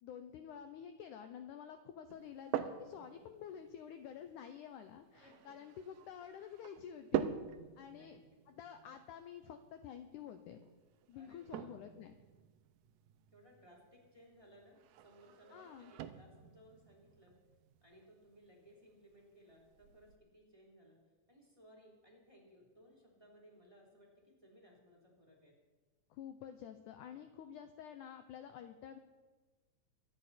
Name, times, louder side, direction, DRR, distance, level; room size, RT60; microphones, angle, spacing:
voice 1, 0.0-7.4 7.8-8.2 8.5-10.6 11.1-12.2 15.5-15.9 26.1-29.0, left 8 dB, 75° left, 8 dB, 1.9 m, -50 dB
sound 1, 2.1-20.2, right 10 dB, 80° right, 2.3 m, -46 dB
voice 2, 5.2-5.5 7.9-8.1 11.1-11.8 13.3-14.8 15.0-17.4 17.8-21.0 21.3-25.6, equal, 10° right, -2 dB, 3.1 m, -62 dB
24.0 x 11.5 x 4.3 m, 1.3 s
omnidirectional pair, 4.3 m